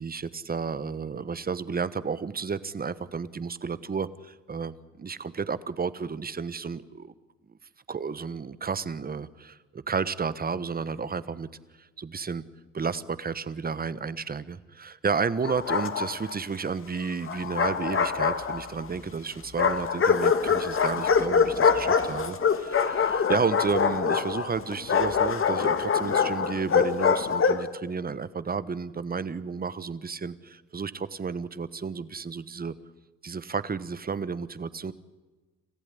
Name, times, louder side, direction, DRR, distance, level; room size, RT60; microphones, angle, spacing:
voice 1, 0.0-7.1 7.9-11.5 12.0-12.4 12.7-32.7 33.2-34.9, right 5 dB, 30° right, 16 dB, 1.2 m, -32 dB
Bark, 15.4-16.4 17.3-18.9 19.6-27.7, left 6 dB, 45° left, 1.8 m, -24 dB
27.5 x 15.0 x 9.9 m, 1.3 s
cardioid pair, 90°, 30 cm